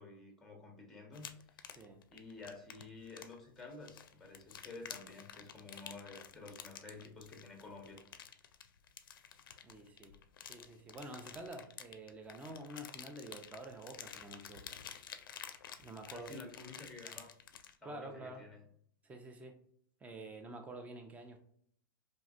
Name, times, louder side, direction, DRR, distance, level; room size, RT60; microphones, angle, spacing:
voice 1, 0.0-1.8 2.1-8.0 16.1-17.3 17.8-18.6, left 3 dB, 5° left, 1 dB, 0.9 m, -51 dB
sound 1, 1.1-17.8, left 8 dB, 80° left, 0.4 m, -51 dB
voice 2, 1.7-2.0 9.6-10.2 10.5-14.7 15.8-16.3 17.8-18.4 19.0-19.5 20.0-21.4, right 2 dB, 15° right, 5 dB, 0.5 m, -48 dB
3.1 x 2.7 x 2.5 m, 0.64 s
hypercardioid pair, 125°, 11 cm